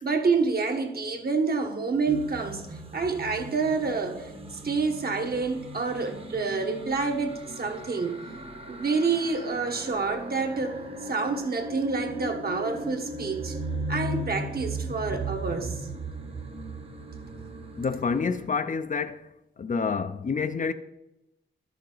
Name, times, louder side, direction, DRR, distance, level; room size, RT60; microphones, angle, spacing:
voice 1, 0.0-2.7 2.9-4.3 4.6-8.2 8.7-10.8 11.1-13.6 13.9-15.8, right 4 dB, 50° right, 1.2 m, -28 dB
sound 1, 2.1-18.5, right 1 dB, 30° right, 1.0 m, -37 dB
voice 2, 17.8-19.3 19.6-20.7, left 5 dB, 40° left, 0.5 m, -28 dB
12.0 x 6.8 x 3.9 m
wide cardioid pair, 95°, 20 cm